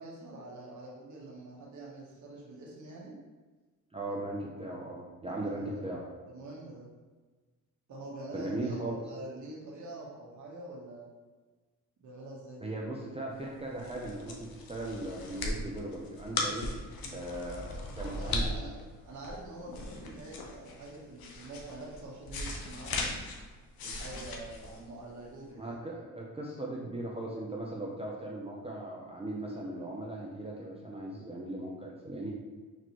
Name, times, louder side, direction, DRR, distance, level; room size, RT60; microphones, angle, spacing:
voice 1, 0.0-3.2 5.3-5.8 6.3-6.9 7.9-11.1 12.0-12.7 17.0-17.2 17.9-18.7 19.0-23.3 23.8-25.8, right 2 dB, 50° right, -4 dB, 1.3 m, -45 dB
voice 2, 3.9-6.1 8.3-9.0 12.6-16.7 17.1-18.5 25.5-32.3, right 1 dB, 15° right, -3 dB, 0.5 m, -38 dB
sound 1, 13.5-25.4, left 2 dB, 70° left, 0.8 m, -38 dB
4.2 x 3.0 x 3.0 m, 1.3 s
cardioid pair, 80°, 37 cm